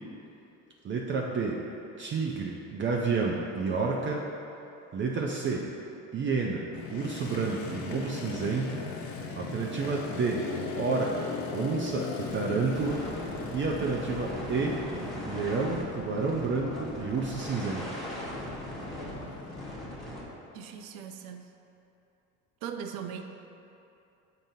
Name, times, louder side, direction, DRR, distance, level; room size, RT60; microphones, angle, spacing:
voice 1, 0.8-1.6 2.0-4.2 4.9-5.7 6.1-6.6 6.9-8.8 9.4-10.5 10.8-13.0 13.5-14.8 15.2-17.9, right 4 dB, 35° right, -2 dB, 0.6 m, -30 dB
Motorcycle, 6.7-19.7, left 4 dB, 55° left, 0.8 m, -39 dB
sound 1, 12.2-20.2, equal, ahead, 1.3 m, -39 dB
voice 2, 20.5-21.5 22.6-23.2, right 8 dB, 85° right, 6 dB, 0.6 m, -39 dB
7.5 x 5.3 x 2.7 m, 2.8 s
cardioid pair, 110°, 34 cm